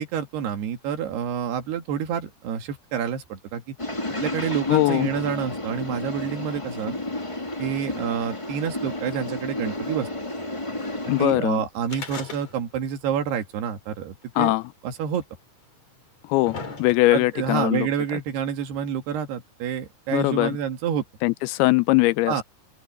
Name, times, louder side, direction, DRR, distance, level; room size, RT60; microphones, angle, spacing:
voice 1, 0.0-3.8 4.2-6.9 7.6-10.1 11.2-14.5 14.8-15.2 17.1-21.0 22.3-22.4, right 8 dB, 80° right, 4.1 m, -28 dB
sound 1, 3.8-11.3, left 1 dB, 15° left, 1.2 m, -32 dB
voice 2, 4.7-5.1 11.1-11.6 14.4-14.6 16.3-18.2 20.1-20.6 21.2-22.4, left 19 dB, 80° left, 2.5 m, -21 dB
sound 2, 11.8-12.9 13.2-13.3 14.2-14.3 15.2-15.3 16.0-17.3 18.2-18.3, left 4 dB, 40° left, 5.0 m, -37 dB
open air
omnidirectional pair, 4.6 m